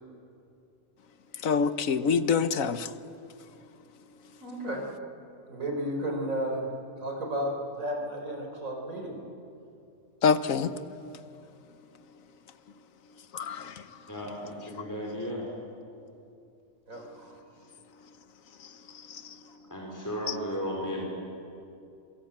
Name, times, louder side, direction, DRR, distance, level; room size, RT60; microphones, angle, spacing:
voice 1, 1.4-2.9 10.2-10.7 13.3-13.8 19.1-19.2, left 6 dB, 75° left, 12 dB, 1.4 m, -26 dB
voice 2, 4.4-4.8 5.5-6.7 7.0-9.2 16.9-17.3, right 1 dB, 75° right, 2 dB, 4.9 m, -33 dB
voice 3, 14.1-15.4 19.3-19.4 19.7-21.1, equal, 10° left, -2 dB, 4.6 m, -35 dB
27.0 x 23.5 x 8.7 m, 2.6 s
omnidirectional pair, 1.4 m